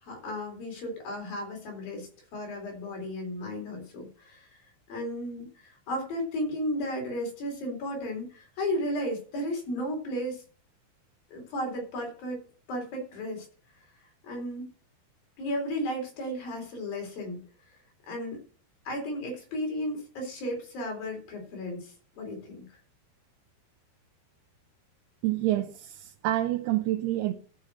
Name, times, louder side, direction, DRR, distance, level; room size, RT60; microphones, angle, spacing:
voice 1, 0.0-10.4 11.3-12.4 12.7-13.5 14.2-14.6 15.4-17.7 18.1-18.4 18.9-22.8, equal, 65° left, 5.5 m, -34 dB
voice 2, 25.2-27.3, right 15 dB, 80° right, 2.8 m, -28 dB
13.0 x 6.3 x 6.5 m
omnidirectional pair, 4.6 m